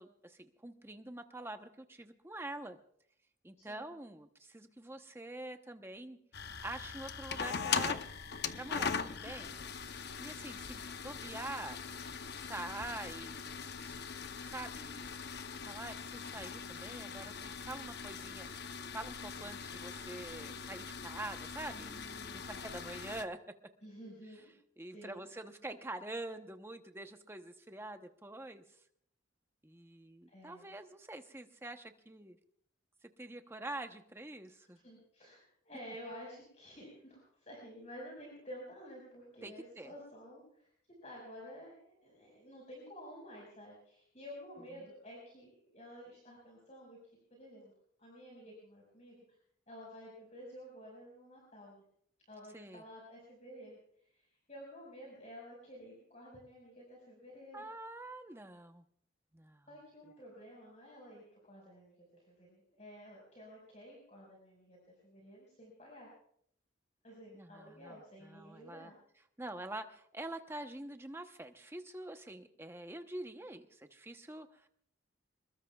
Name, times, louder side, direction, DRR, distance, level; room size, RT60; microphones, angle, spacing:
voice 1, 0.0-2.8 3.4-6.2 6.6-8.0 8.5-9.5 10.2-11.8 12.4-15.0 15.6-18.5 18.9-22.0 22.3-23.4 24.8-28.6 29.6-32.4 33.0-34.8 39.4-39.9 52.5-52.8 57.5-58.8 59.3-59.7 67.3-68.9 69.4-74.7, right 2 dB, 10° right, 7 dB, 0.9 m, -46 dB
voice 2, 3.6-4.0 21.7-22.8 23.8-24.5 24.9-25.3 30.3-30.8 34.6-40.7 41.0-47.7 48.0-49.1 49.7-51.8 52.3-57.6 59.7-64.8 65.0-66.1 67.0-69.0, equal, 35° left, -3 dB, 5.3 m, -52 dB
sound 1, 6.3-23.2, left 6 dB, 55° left, 0.8 m, -41 dB
25.5 x 21.0 x 2.4 m, 0.67 s
head